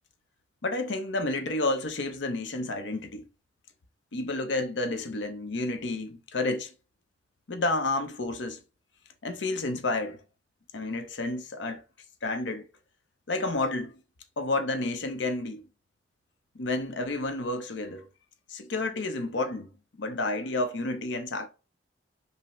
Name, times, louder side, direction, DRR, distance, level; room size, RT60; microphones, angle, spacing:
voice 1, 0.6-3.2 4.1-6.7 7.5-8.6 9.2-10.2 10.7-11.8 12.2-12.6 13.3-14.0 14.4-15.7 16.5-18.1 18.5-19.7 20.0-21.5, left 2 dB, 70° left, 0.6 m, -30 dB
5.4 x 2.0 x 3.0 m
head